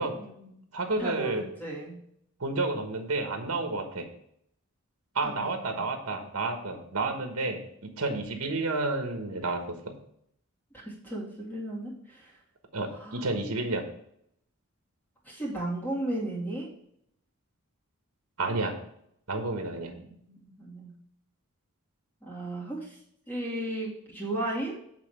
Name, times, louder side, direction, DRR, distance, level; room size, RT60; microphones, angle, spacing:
voice 1, 0.2-0.6 1.0-2.0 5.2-5.8 6.2-6.3 10.7-12.4 12.9-13.2 15.2-16.7 19.7-20.9 22.3-23.0 23.3-24.7, right 1 dB, 10° left, -4 dB, 2.5 m, -35 dB
voice 2, 0.7-1.4 2.4-4.1 5.1-9.9 12.7-13.8 18.4-18.7 19.3-19.9, right 3 dB, 65° right, 5 dB, 1.3 m, -30 dB
8.3 x 3.9 x 6.6 m, 0.71 s
head